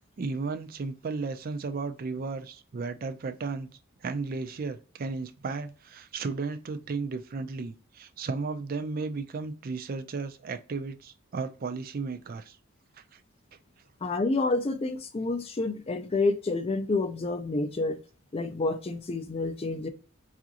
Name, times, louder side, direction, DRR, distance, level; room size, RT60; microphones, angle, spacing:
voice 1, 0.2-3.7 4.0-12.6 13.1-13.2, right 4 dB, 40° right, 0.4 m, -34 dB
voice 2, 14.0-18.0 18.3-19.9, left 3 dB, 25° left, 0.4 m, -29 dB
4.8 x 2.4 x 2.8 m
head